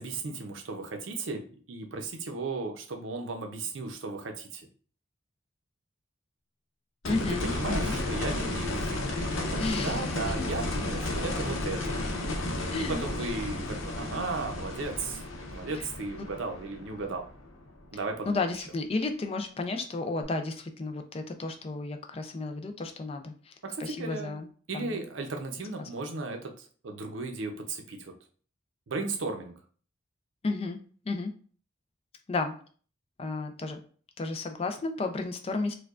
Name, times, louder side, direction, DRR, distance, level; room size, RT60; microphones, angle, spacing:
voice 1, 0.0-4.7 7.1-12.0 12.7-15.2 15.5-17.3 17.9-18.4 23.6-24.4 24.7-28.1 28.9-29.5, right 3 dB, 70° right, 4 dB, 0.6 m, -35 dB
sound 1, 7.0-17.9 20.2-20.3, left 2 dB, 80° left, 0.7 m, -33 dB
voice 2, 7.0-8.0 9.6-10.1 12.7-13.0 15.8-15.9 16.2-16.3 18.3-23.5 23.8-24.5 24.7-25.0 25.8-25.9 30.4-30.8 31.1-31.3 32.3-32.6 33.2-33.8 34.2-35.7, left 3 dB, 30° left, 6 dB, 0.3 m, -32 dB
4.5 x 2.2 x 2.4 m, 0.43 s
head